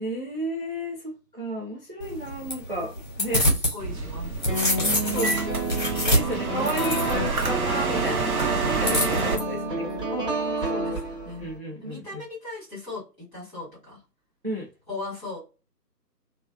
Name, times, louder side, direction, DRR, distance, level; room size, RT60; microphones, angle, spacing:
voice 1, 0.0-2.9 3.2-3.5 5.0-5.4 6.0-9.9 10.2-10.3 11.4-12.2 14.4-14.7, right 1 dB, 35° right, 0.5 m, -33 dB
sound 1, 2.0-3.8 4.1-7.4 8.8-9.4, left 1 dB, 30° left, 0.8 m, -26 dB
voice 2, 3.2-5.4 8.4-8.6 10.6-11.5 11.8-14.0 14.9-15.4, left 2 dB, ahead, 1.3 m, -39 dB
sound 2, 3.8-9.4, right 4 dB, 60° right, 0.9 m, -28 dB
sound 3, 4.5-11.6, right 1 dB, 15° right, 1.3 m, -30 dB
2.9 x 2.2 x 2.3 m
figure-of-eight pair, 150°, 49 cm